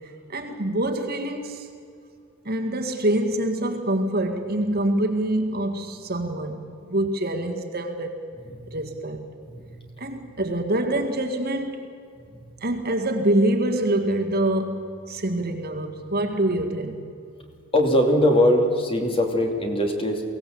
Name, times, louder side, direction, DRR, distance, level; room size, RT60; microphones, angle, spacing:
voice 1, 0.3-1.7 2.5-8.2 8.7-9.3 10.0-11.9 12.6-17.1, right 1 dB, 45° right, 4 dB, 1.9 m, -25 dB
voice 2, 9.5-10.1 12.3-12.5 17.7-20.2, left 1 dB, 25° left, 3 dB, 2.6 m, -22 dB
23.0 x 17.0 x 7.8 m, 2.4 s
head